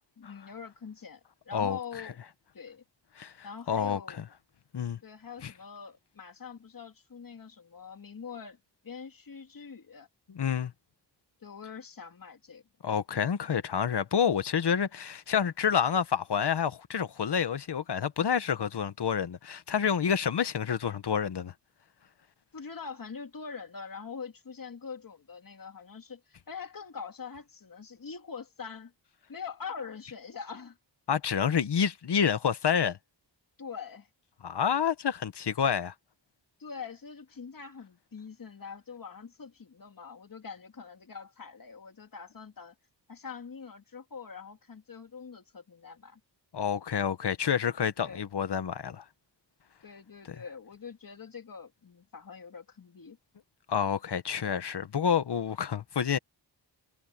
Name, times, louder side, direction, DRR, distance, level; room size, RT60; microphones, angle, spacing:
voice 1, 0.2-2.2 2.5-2.8 3.4-4.2 5.0-8.6 8.8-10.1 11.4-12.6 22.5-28.9 29.3-30.8 33.6-34.1 36.6-42.7 43.1-46.2 48.0-48.2 49.8-53.2, left 6 dB, 50° left, 2.5 m, -44 dB
voice 2, 3.2-4.0 4.7-5.0 5.4-5.5 10.3-10.7 12.8-21.5 31.1-33.0 34.4-35.9 46.5-49.0 53.7-56.2, left 7 dB, 65° left, 1.2 m, -28 dB
wide cardioid pair, 115°, 44 cm